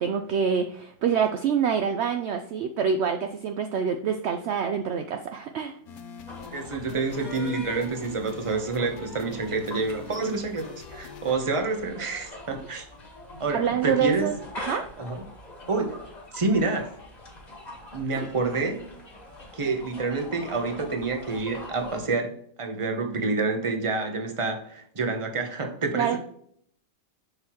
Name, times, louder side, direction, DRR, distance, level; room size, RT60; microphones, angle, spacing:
voice 1, 0.0-5.8 13.5-14.8 18.2-18.3 25.9-26.2, right 7 dB, 70° right, 6 dB, 0.6 m, -26 dB
sound 1, 5.9-11.3, left 8 dB, 70° left, 1.2 m, -45 dB
sound 2, 6.3-22.1, left 2 dB, 25° left, 1.7 m, -43 dB
voice 2, 6.5-12.8 13.4-14.3 15.0-15.2 15.7-15.9 16.3-17.0 17.9-18.8 19.5-22.3 22.6-26.2, right 3 dB, 25° right, 4 dB, 0.8 m, -28 dB
6.8 x 5.6 x 3.0 m, 0.65 s
omnidirectional pair, 1.6 m